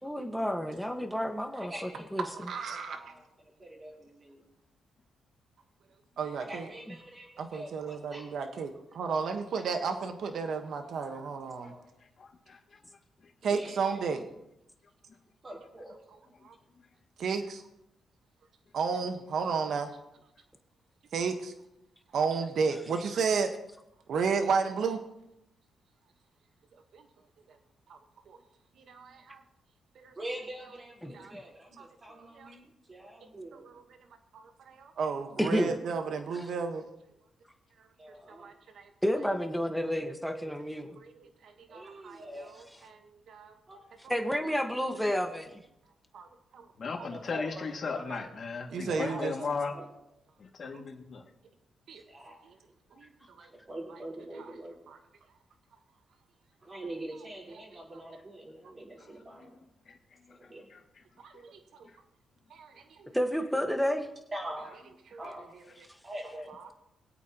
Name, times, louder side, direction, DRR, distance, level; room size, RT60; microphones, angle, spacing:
voice 1, 0.0-2.3 31.0-31.1 35.4-35.7 39.0-40.9 44.1-45.5 63.1-64.1, equal, ahead, 5 dB, 1.6 m, -30 dB
voice 2, 1.6-4.4 6.4-8.3 11.2-11.8 13.5-14.2 15.4-16.0 30.2-33.7 38.0-38.6 41.7-42.5 43.7-43.8 45.3-45.4 47.0-48.3 48.8-49.9 51.9-52.7 53.5-54.7 56.6-59.6 60.3-60.7 64.3-64.7 65.2-65.5 66.0-66.5, right 1 dB, 30° right, -2 dB, 4.3 m, -44 dB
voice 3, 2.5-3.0 6.2-6.7 7.4-11.7 13.4-14.2 16.4-16.5 17.2-17.6 18.7-20.0 21.1-21.5 22.1-23.5 24.1-25.0 26.9-27.0 27.9-28.0 28.3-28.4 28.9-29.4 30.0-30.1 31.1-31.3 32.4-32.5 33.5-33.7 34.7-36.8 38.3-38.9 41.2-41.3 41.7-42.2 42.9-43.0 43.3-43.5 46.1-46.3 46.5-46.7 47.0-47.1 48.1-48.2 48.7-49.3 50.6-50.7 51.9-52.0 53.0-53.1 53.4-53.5 54.9-55.0 61.2-61.6 62.5-63.1 65.1-65.2, right 5 dB, 70° right, 6 dB, 1.4 m, -32 dB
voice 4, 12.2-12.6 46.8-49.7 50.4-51.2 59.9-60.0 60.4-60.8, left 5 dB, 50° left, 1 dB, 2.3 m, -36 dB
24.0 x 8.5 x 3.0 m, 0.86 s
cardioid pair, 90°, 0 cm